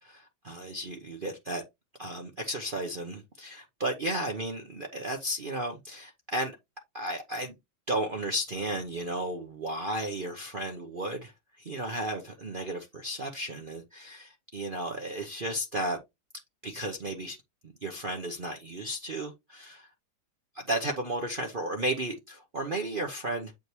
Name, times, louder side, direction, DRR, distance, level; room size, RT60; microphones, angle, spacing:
voice 1, 0.0-1.6 2.0-6.5 6.9-7.5 7.9-11.3 11.6-16.0 16.6-17.4 17.6-19.9 20.7-23.5, right 1 dB, 75° right, 0.4 m, -34 dB
8.0 x 5.1 x 3.0 m
omnidirectional pair, 2.2 m